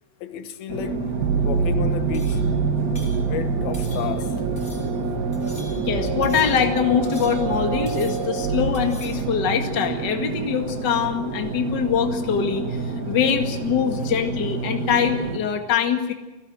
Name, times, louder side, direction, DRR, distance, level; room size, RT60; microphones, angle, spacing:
voice 1, 0.2-1.0 1.4-2.4 3.3-4.4, left 9 dB, 90° left, 3.1 m, -32 dB
sound 1, 0.7-15.4, right 3 dB, 35° right, 1.5 m, -29 dB
sound 2, 1.2-9.9, right 5 dB, 75° right, 2.9 m, -27 dB
sound 3, 2.1-2.5 2.9-3.2 3.7-4.3 4.6-4.9 5.3-5.9 6.2-6.7 7.0-7.6 7.9-8.4 8.7-9.3, left 1 dB, 15° left, 5.0 m, -45 dB
voice 2, 5.8-16.1, left 8 dB, 35° left, 2.0 m, -23 dB
29.0 x 16.5 x 6.4 m
omnidirectional pair, 4.1 m